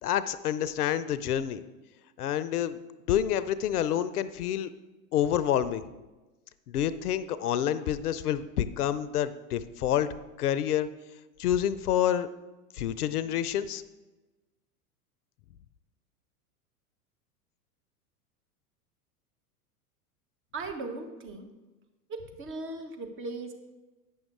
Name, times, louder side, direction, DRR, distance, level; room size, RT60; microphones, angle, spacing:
voice 1, 0.0-1.6 2.2-2.8 3.1-4.7 5.1-5.8 6.7-10.1 10.4-10.9 11.4-12.3 12.7-13.8, left 10 dB, 75° left, 15 dB, 0.6 m, -28 dB
voice 2, 20.5-21.5 22.1-23.5, right 3 dB, 25° right, 5 dB, 1.1 m, -38 dB
8.9 x 6.2 x 3.7 m, 1.1 s
hypercardioid pair, 95°, 46 cm